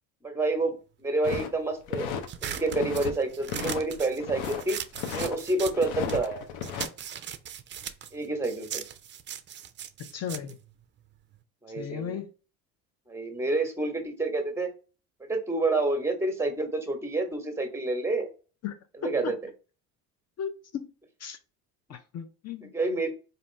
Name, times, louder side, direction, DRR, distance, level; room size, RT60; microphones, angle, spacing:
voice 1, 0.2-2.1 2.4-4.8 5.1-6.5 8.1-8.8 11.6-12.2 13.1-14.7 15.3-18.3 19.0-19.4 22.7-23.1, right 2 dB, 5° right, 1.1 m, -28 dB
sound 1, 1.2-2.3 2.6-3.1 3.4-4.6 4.9-5.3 5.7-6.9, left 7 dB, 75° left, 0.8 m, -34 dB
sound 2, 2.3-6.3 6.6-11.4, right 9 dB, 30° right, 0.4 m, -39 dB
voice 2, 10.0-10.6 11.8-12.3 18.6-18.7 19.0-19.3 20.4-20.9 21.2-21.4 21.9-22.7, left 8 dB, 40° left, 0.6 m, -35 dB
4.0 x 2.7 x 3.2 m
supercardioid pair, 85°, 41 cm